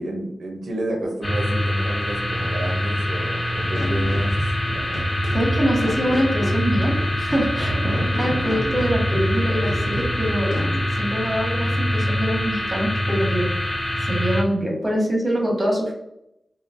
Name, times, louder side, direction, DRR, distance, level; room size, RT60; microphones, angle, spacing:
voice 1, 0.0-4.4 4.7-5.1 5.9-6.2 7.7-8.1, right 1 dB, 90° right, 0 dB, 0.6 m, -31 dB
sound 1, 1.2-14.4, left 1 dB, 25° left, 0.9 m, -24 dB
sound 2, 3.7-10.8, equal, 75° left, 0.6 m, -31 dB
voice 2, 5.3-6.9 7.2-7.8 8.1-10.6 11.0-13.5 14.1-15.9, equal, 20° right, -1 dB, 1.0 m, -24 dB
3.7 x 2.0 x 2.5 m, 0.81 s
wide cardioid pair, 100°, 0 cm